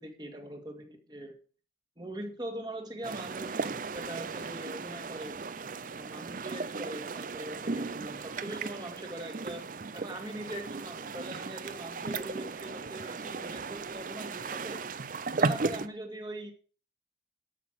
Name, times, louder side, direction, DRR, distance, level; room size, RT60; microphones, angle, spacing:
voice 1, 0.0-1.4 2.0-5.4 5.9-9.6 9.9-14.8 15.4-16.5, right 1 dB, 20° right, 4 dB, 1.9 m, -42 dB
sound 1, 3.0-15.9, right 4 dB, 45° right, 0.5 m, -36 dB
12.5 x 6.1 x 6.2 m, 0.39 s
head